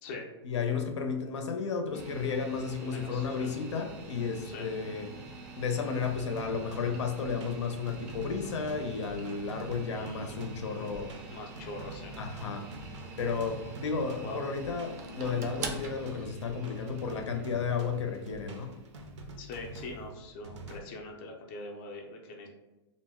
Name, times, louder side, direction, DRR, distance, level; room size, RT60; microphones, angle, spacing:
voice 1, 0.4-5.1 5.6-11.1 12.2-12.7 13.2-18.7, left 5 dB, 85° left, 5 dB, 0.6 m, -33 dB
old pc turn on boot turn off, 1.9-20.0, right 3 dB, 35° right, 0.4 m, -45 dB
voice 2, 2.8-3.5 4.4-4.7 9.9-10.3 11.3-12.1 14.2-14.4 19.4-22.5, left 2 dB, 25° left, 0 dB, 0.4 m, -43 dB
sound 1, 6.0-20.8, right 1 dB, 90° right, 0.6 m, -47 dB
2.5 x 2.1 x 3.4 m, 1.0 s
supercardioid pair, 170°, 15 cm